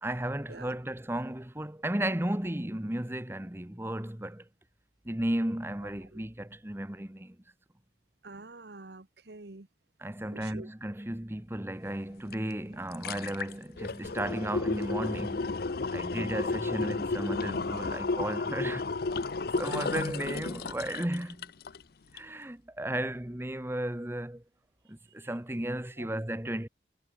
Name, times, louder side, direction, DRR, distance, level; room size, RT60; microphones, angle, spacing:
voice 1, 0.0-4.4 5.0-7.4 10.0-15.6 15.9-18.9 19.6-21.5 22.1-24.4 24.9-26.7, right 1 dB, 15° right, 1.0 m, -34 dB
voice 2, 8.2-9.7 10.3-10.7, right 3 dB, 60° right, 1.2 m, -46 dB
sound 1, 12.3-12.4 12.7-21.8 22.2-22.3, left 3 dB, 55° left, 0.7 m, -33 dB
head